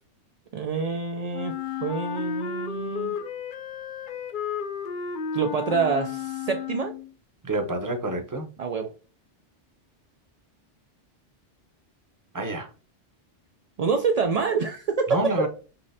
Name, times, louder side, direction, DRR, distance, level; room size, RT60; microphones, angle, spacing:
voice 1, 0.5-1.5 1.8-3.2 5.3-6.9 8.6-8.9 13.8-15.3, right 5 dB, 60° right, 0.4 m, -26 dB
Wind instrument woodwind instrument, 1.3-7.1, left 7 dB, 60° left, 0.5 m, -33 dB
voice 2, 7.4-8.5 12.3-12.7 15.1-15.5, right 2 dB, 20° right, 0.7 m, -28 dB
5.4 x 3.1 x 2.7 m
omnidirectional pair, 1.2 m